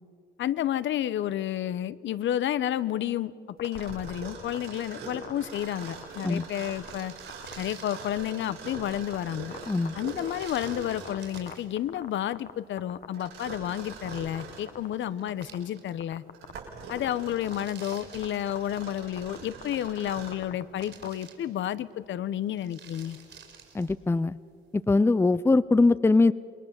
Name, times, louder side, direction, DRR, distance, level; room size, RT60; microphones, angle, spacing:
voice 1, 0.4-3.3 3.6-7.1 7.6-9.5 9.9-16.2 16.9-23.2, left 11 dB, 70° left, 17 dB, 0.9 m, -31 dB
sound 1, 3.6-4.1 4.5-4.7 5.2-6.4 6.7-6.9 7.3-7.5 7.9-8.0 8.4-9.1 9.5-12.5 12.8-13.5 13.8-14.4 14.7-15.6 16.0-16.6 16.9-17.1 17.4-17.9 18.2-18.3 18.5-18.8 19.2-19.4 19.6-21.1, left 7 dB, 50° left, 1.2 m, -41 dB
Mechanisms, 3.6-11.3 13.1-14.7 15.3-15.4 16.1-20.5, right 4 dB, 85° right, 6.6 m, -43 dB
sound 2, 6.3-6.4 6.5-8.4 10.0-11.8 14.5-14.6 14.8-16.2 16.5-16.6 17.2-18.9 19.9-20.5 20.8-21.9 22.4-24.1, right 7 dB, 65° right, 4.9 m, -50 dB
voice 2, 23.7-24.3 24.9-26.3, left 3 dB, 10° left, 17 dB, 0.5 m, -21 dB
27.5 x 22.5 x 7.4 m, 2.3 s
cardioid pair, 90°, 20 cm